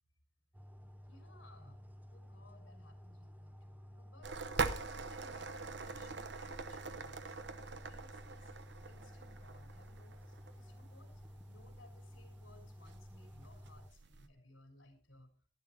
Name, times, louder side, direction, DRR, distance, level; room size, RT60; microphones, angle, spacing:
sound 1, 0.5-13.9, equal, 10° right, 0.9 m, -54 dB
voice 1, 1.1-1.8 2.1-4.4 4.9-8.5 8.9-15.3, left 2 dB, 80° left, 5 dB, 3.6 m, -63 dB
sound 2, 4.2-14.3, right 4 dB, 60° right, 1.0 m, -44 dB
12.0 x 11.0 x 4.1 m, 0.38 s
head